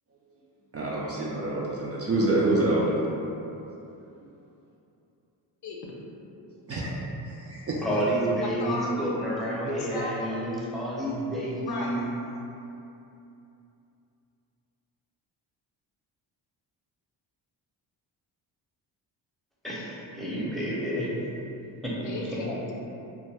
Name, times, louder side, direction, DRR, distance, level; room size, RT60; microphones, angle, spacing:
voice 1, 0.7-3.0 6.7-6.8 7.2-7.8, right 2 dB, 35° right, -5 dB, 0.4 m, -26 dB
voice 2, 7.8-12.0 19.6-21.1 21.8-21.9, right 1 dB, ahead, -7 dB, 0.7 m, -29 dB
voice 3, 9.9-10.5 11.6-11.9 20.7-21.3 22.0-22.7, left 3 dB, 55° left, -3 dB, 0.7 m, -35 dB
2.6 x 2.1 x 3.3 m, 2.8 s
supercardioid pair, 60°, 48 cm